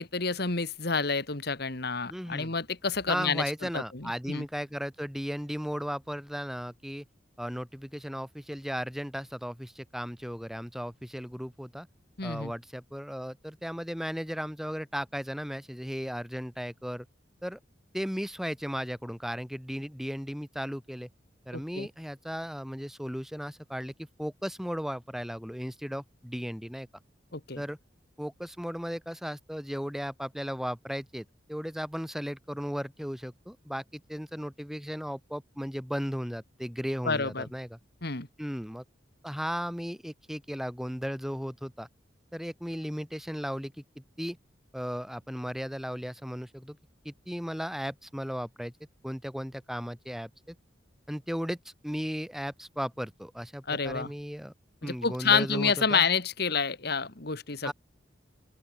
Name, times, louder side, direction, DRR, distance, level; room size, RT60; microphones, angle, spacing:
voice 1, 0.0-3.4 3.7-4.5 12.2-12.5 21.5-21.9 27.3-27.6 37.0-37.4 38.0-38.3 53.7-54.1 54.8-57.7, left 5 dB, 55° left, 2.1 m, -29 dB
voice 2, 2.1-2.5 3.1-7.0 7.4-11.9 12.2-17.1 17.4-17.6 17.9-21.1 21.5-26.9 27.6-27.8 28.2-37.8 38.4-38.8 39.2-41.9 42.3-44.4 44.7-46.8 47.0-48.7 49.0-50.5 51.1-54.5 54.8-56.0 57.6-57.7, equal, ahead, 3.2 m, -36 dB
open air
head